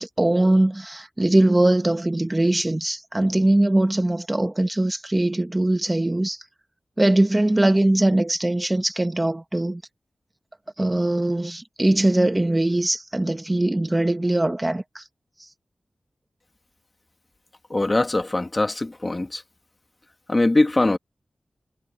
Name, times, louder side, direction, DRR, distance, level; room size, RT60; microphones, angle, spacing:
voice 1, 0.0-6.4 7.0-9.8 10.8-15.0, right 1 dB, 20° right, 1.2 m, -21 dB
voice 2, 17.7-19.4 20.3-21.0, left 2 dB, 30° left, 2.1 m, -21 dB
wide cardioid pair, 75°, 0 cm